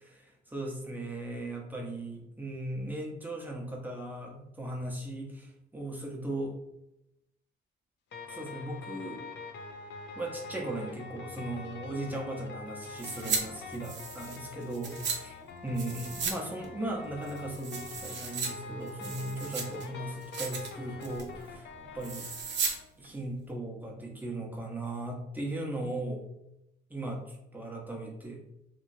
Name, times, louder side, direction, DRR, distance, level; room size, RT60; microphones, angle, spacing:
voice 1, 0.5-6.6 8.3-9.2 10.2-15.4 15.6-21.7 21.9-22.3 23.0-26.2 26.9-28.4, right 1 dB, 10° right, 0 dB, 0.8 m, -37 dB
sound 1, 8.1-22.8, left 4 dB, 60° left, 0.5 m, -45 dB
sound 2, 13.0-13.4 13.7-15.2 15.8-16.4 16.6-16.7 17.2-18.5 18.9-19.8 20.2-20.7 21.0-21.3 22.0-22.8 23.0-23.1, right 5 dB, 65° right, 0.6 m, -35 dB
3.0 x 2.8 x 2.6 m, 0.86 s
cardioid pair, 90°, 20 cm